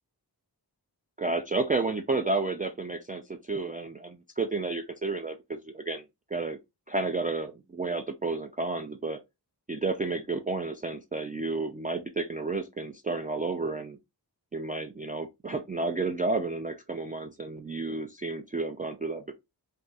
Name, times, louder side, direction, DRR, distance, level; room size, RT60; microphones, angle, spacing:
voice 1, 1.2-6.1 6.3-6.6 6.9-9.2 9.7-14.0 14.5-19.3, right 3 dB, 20° right, 0.3 m, -31 dB
2.6 x 2.3 x 3.9 m
wide cardioid pair, 65°, 41 cm